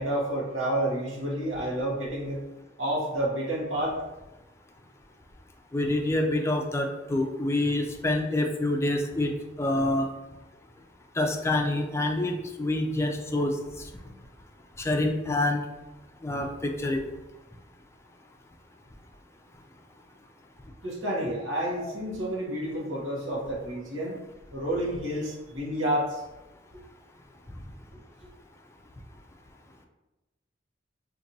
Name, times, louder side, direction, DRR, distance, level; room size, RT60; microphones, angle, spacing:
voice 1, 0.0-2.4 2.8-4.0 20.8-24.2 24.5-26.2, right 1 dB, 80° right, -5 dB, 1.1 m, -29 dB
voice 2, 5.7-9.3 9.6-10.1 11.2-13.9 14.8-15.6 16.2-17.0 21.8-21.9, left 1 dB, 15° left, 2 dB, 0.4 m, -27 dB
2.8 x 2.6 x 3.9 m, 1.0 s
head